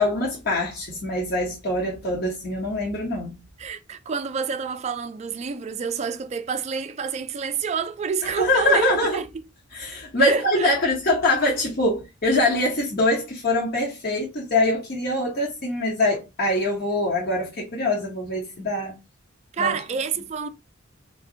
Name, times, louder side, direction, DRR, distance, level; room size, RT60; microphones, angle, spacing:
voice 1, 0.0-3.4 8.4-9.2 9.7-19.0 19.6-19.7, left 2 dB, 50° left, 0.9 m, -24 dB
voice 2, 3.6-9.3 10.2-10.7 19.5-20.5, right 5 dB, 35° right, 0.3 m, -28 dB
2.5 x 2.2 x 3.8 m
head